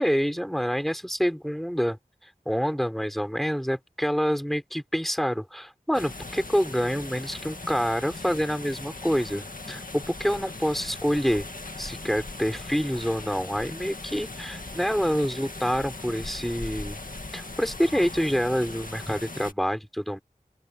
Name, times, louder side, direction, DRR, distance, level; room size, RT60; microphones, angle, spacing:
voice 1, 0.0-11.5 11.8-17.0 17.3-20.2, equal, ahead, 5.1 m, -27 dB
sound 1, 5.9-19.5, left 2 dB, 65° left, 2.0 m, -39 dB
open air
wide cardioid pair, 40°, 15 cm